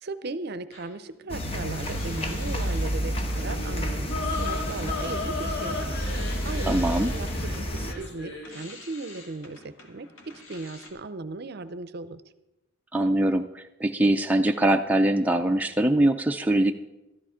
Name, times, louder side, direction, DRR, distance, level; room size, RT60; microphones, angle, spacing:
voice 1, 0.0-6.0 6.4-12.2, right 3 dB, 50° right, 14 dB, 0.6 m, -37 dB
sound 1, 0.7-3.8 4.1-10.9, left 2 dB, 85° left, 2.0 m, -47 dB
sound 2, 1.3-7.9, equal, 30° left, 1.0 m, -30 dB
sound 3, 3.3-8.6, left 3 dB, 55° left, 2.4 m, -35 dB
voice 2, 6.7-7.1 12.9-16.7, right 1 dB, 10° right, 4 dB, 0.4 m, -23 dB
13.0 x 11.0 x 5.0 m, 0.96 s
head